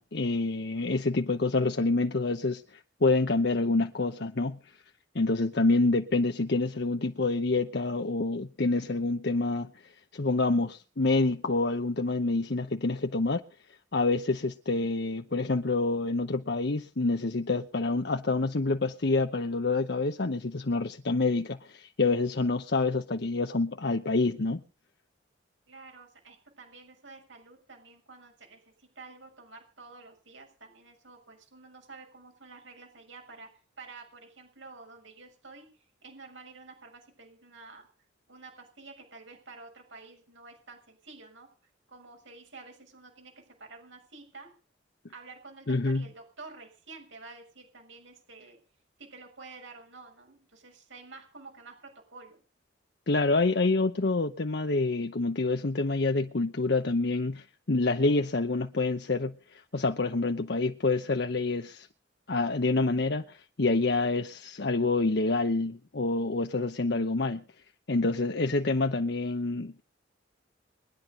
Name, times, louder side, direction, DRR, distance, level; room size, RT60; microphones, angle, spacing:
voice 1, 0.0-4.6 5.1-13.4 13.9-24.6 45.7-46.1 53.1-61.9 62.3-67.4 67.9-69.8, left 3 dB, 60° left, 0.9 m, -27 dB
voice 2, 25.7-33.5 33.8-35.7 36.0-37.9 38.3-41.5 41.9-44.5 45.1-48.6 49.0-52.4, right 3 dB, 85° right, 6.6 m, -50 dB
22.5 x 11.0 x 5.4 m
head